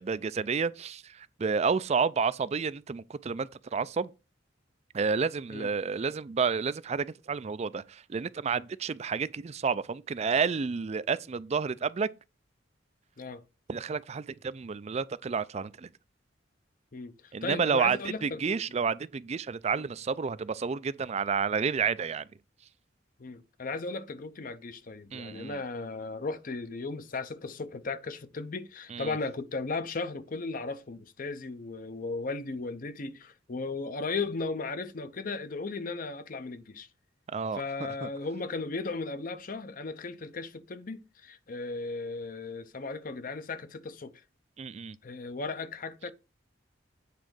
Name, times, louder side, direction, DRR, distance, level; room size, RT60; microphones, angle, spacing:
voice 1, 0.0-4.1 4.9-12.1 13.7-15.9 17.3-22.3 25.1-25.6 28.9-29.1 37.3-38.1 44.6-45.0, right 5 dB, 35° right, 0.4 m, -30 dB
voice 2, 16.9-18.6 19.8-19.9 23.2-36.9 37.5-44.1 45.0-46.1, left 3 dB, 45° left, 0.6 m, -36 dB
8.4 x 3.8 x 6.1 m
head